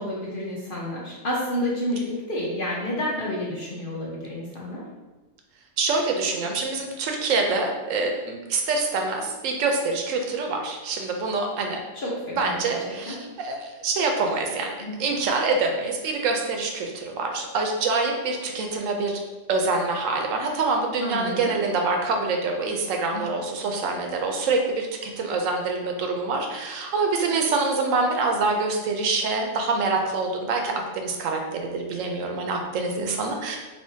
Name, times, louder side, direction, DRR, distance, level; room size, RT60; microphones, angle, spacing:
voice 1, 0.0-4.8 12.0-12.7 13.1-13.2 14.8-14.9 21.0-21.5 23.1-23.2, left 1 dB, 50° left, -5 dB, 0.8 m, -30 dB
voice 2, 5.8-11.8 12.4-14.7 15.0-19.2 19.5-33.6, right 3 dB, 75° right, 2 dB, 0.9 m, -25 dB
3.5 x 3.0 x 2.6 m, 1.2 s
omnidirectional pair, 1.4 m